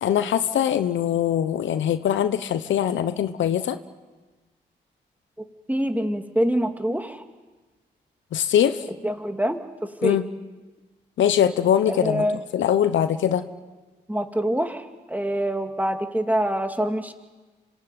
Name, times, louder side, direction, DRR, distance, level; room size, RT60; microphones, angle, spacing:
voice 1, 0.0-3.8 8.3-8.8 10.0-10.3 11.2-12.2 12.5-13.5, left 10 dB, 75° left, 12 dB, 1.0 m, -22 dB
voice 2, 5.7-7.2 9.0-9.6 10.0-10.2 11.9-12.4 14.1-17.1, equal, 10° right, 6 dB, 2.6 m, -25 dB
26.0 x 17.5 x 9.2 m, 1.2 s
supercardioid pair, 45°, 20 cm